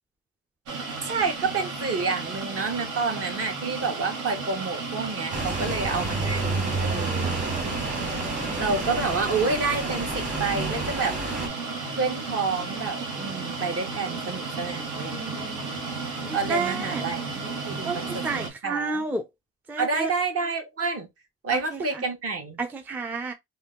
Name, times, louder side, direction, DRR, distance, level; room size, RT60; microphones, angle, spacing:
sound 1, 0.7-18.5, right 4 dB, 80° right, 1.1 m, -34 dB
voice 1, 1.0-7.4 8.6-11.2 12.0-15.2 16.3-18.1 18.3-19.0 19.8-21.1 21.4-22.6, right 4 dB, 50° right, 1.2 m, -29 dB
sound 2, 5.3-11.5, right 3 dB, 25° right, 1.3 m, -30 dB
voice 2, 5.6-6.2 6.5-7.4 8.4-8.8 15.2-15.8 16.2-17.0 17.8-19.2 19.7-20.1 21.5-22.0 22.6-23.3, right 4 dB, 5° right, 0.4 m, -32 dB
2.7 x 2.1 x 3.5 m
cardioid pair, 90°, 30 cm